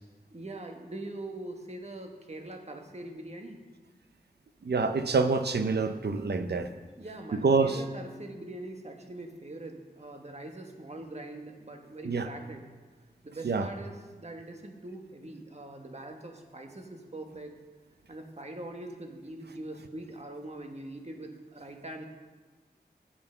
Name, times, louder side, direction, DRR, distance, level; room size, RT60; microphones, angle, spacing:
voice 1, 0.3-3.6 7.0-12.6 13.2-17.5 18.1-22.1, right 2 dB, 40° right, 3 dB, 1.4 m, -42 dB
voice 2, 4.6-6.7 7.3-7.8 12.0-12.3 13.4-13.7, right 4 dB, 85° right, 8 dB, 0.7 m, -26 dB
9.4 x 8.3 x 5.7 m, 1.3 s
wide cardioid pair, 55°, 17 cm